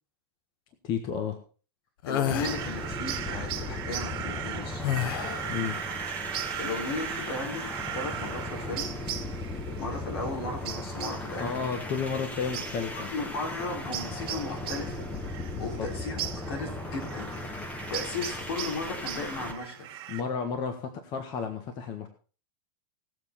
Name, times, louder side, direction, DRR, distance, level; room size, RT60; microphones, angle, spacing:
voice 1, 0.8-1.4 5.5-5.8 11.4-13.1 15.5-15.9 20.1-22.1, left 6 dB, 35° left, 7 dB, 1.5 m, -32 dB
voice 2, 2.0-4.9 6.6-7.7 7.9-8.9 9.8-11.4 12.9-16.2 16.5-17.3 17.9-19.9, left 3 dB, 80° left, 1 dB, 5.4 m, -36 dB
sound 1, 2.0-2.6 4.8-5.5, left 11 dB, 65° left, 1.0 m, -29 dB
sound 2, 2.2-19.6, left 2 dB, 10° left, 1.1 m, -37 dB
sound 3, 2.4-20.2, right 11 dB, 40° right, 2.0 m, -39 dB
18.5 x 7.4 x 4.3 m, 0.38 s
supercardioid pair, 150°, 13 cm